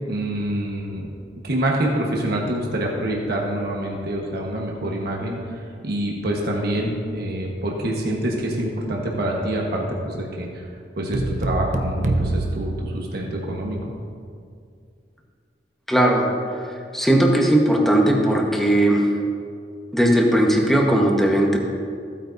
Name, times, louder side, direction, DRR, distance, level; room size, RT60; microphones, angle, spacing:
voice 1, 0.1-1.1 1.4-10.7 11.0-13.8, right 1 dB, 60° right, -1 dB, 1.2 m, -26 dB
sound 1, 11.1-13.6, right 2 dB, 45° right, 0.7 m, -26 dB
voice 2, 15.9-19.1 19.9-21.6, right 1 dB, ahead, 0 dB, 1.1 m, -18 dB
15.0 x 9.0 x 2.7 m, 2.3 s
head